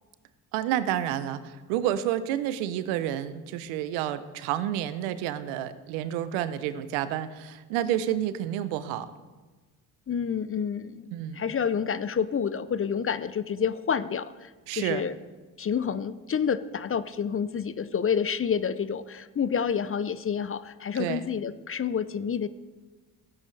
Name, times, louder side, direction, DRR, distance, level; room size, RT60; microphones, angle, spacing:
voice 1, 0.5-9.1 11.1-11.4 14.7-15.1 20.9-21.2, right 11 dB, 85° right, 14 dB, 0.7 m, -29 dB
voice 2, 10.1-11.1 11.3-15.1 15.6-22.5, left 7 dB, 30° left, 15 dB, 0.5 m, -29 dB
16.5 x 8.4 x 3.3 m, 1.3 s
hypercardioid pair, 55°, 48 cm